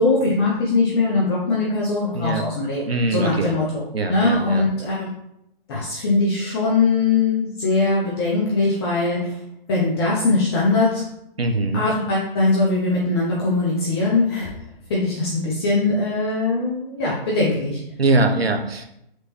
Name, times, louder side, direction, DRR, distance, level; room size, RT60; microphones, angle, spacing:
voice 1, 0.0-5.1 5.7-9.4 9.7-11.0 11.7-14.5 14.9-17.8, left 3 dB, 25° left, -5 dB, 0.7 m, -21 dB
voice 2, 2.1-2.5 2.9-3.5 3.9-4.7 11.4-11.8 18.0-18.9, right 2 dB, 90° right, 5 dB, 0.8 m, -22 dB
4.4 x 3.1 x 2.9 m, 0.79 s
figure-of-eight pair, 135°, 30 cm